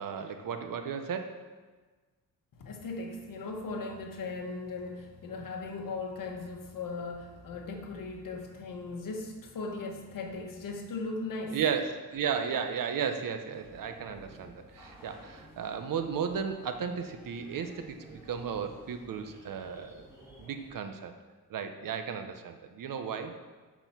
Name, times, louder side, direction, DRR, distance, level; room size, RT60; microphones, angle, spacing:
voice 1, 0.0-1.4 11.5-20.0 20.4-21.1 21.5-23.4, right 7 dB, 70° right, 7 dB, 1.0 m, -34 dB
voice 2, 2.6-11.6, left 3 dB, 65° left, 1 dB, 1.6 m, -38 dB
sound 1, 13.5-20.7, equal, 10° right, 2.8 m, -54 dB
8.1 x 6.8 x 6.0 m, 1.3 s
wide cardioid pair, 135°, 35 cm